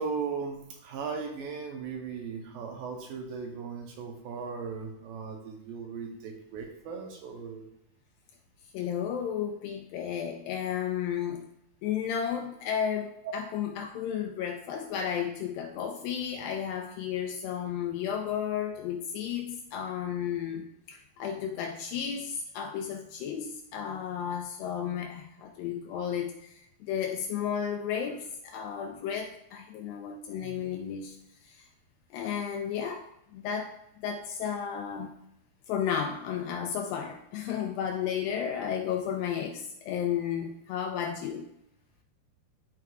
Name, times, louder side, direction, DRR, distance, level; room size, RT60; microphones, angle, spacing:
voice 1, 0.0-7.6 13.2-13.3 30.4-30.8, right 5 dB, 75° right, 2 dB, 2.3 m, -37 dB
voice 2, 8.7-11.5 11.8-31.2 31.4-31.7 32.1-33.0 33.3-33.8 34.0-35.1 35.7-41.4, left 8 dB, 80° left, 3 dB, 2.1 m, -33 dB
11.5 x 4.7 x 2.3 m, 0.78 s
omnidirectional pair, 4.5 m